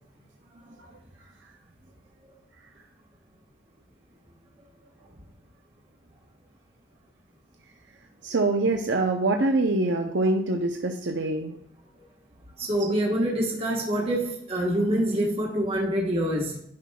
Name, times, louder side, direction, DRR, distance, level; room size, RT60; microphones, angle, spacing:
voice 1, 8.2-11.6, right 2 dB, 75° right, 0.7 m, -24 dB
voice 2, 12.6-16.6, right 1 dB, 30° right, 1.3 m, -26 dB
10.5 x 5.9 x 2.3 m
head